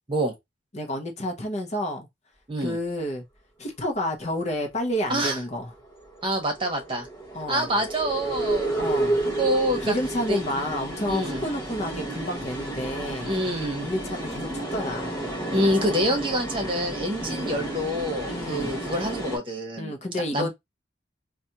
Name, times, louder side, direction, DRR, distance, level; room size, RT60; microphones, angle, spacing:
voice 1, 0.7-2.1 2.6-3.2 3.6-5.7 7.3-7.7 8.8-9.2 9.8-13.3 13.8-15.3 17.2-17.7 18.3-18.8 19.8-20.5, left 1 dB, 35° left, 0.7 m, -30 dB
sound 1, 5.4-19.4, right 2 dB, 15° left, 2.2 m, -31 dB
voice 2, 6.2-7.1 7.5-8.7 9.4-9.9 10.3-10.4 11.1-11.4 13.2-13.9 15.5-19.9 20.3-20.5, equal, 25° right, 1.1 m, -26 dB
4.1 x 2.3 x 2.8 m
head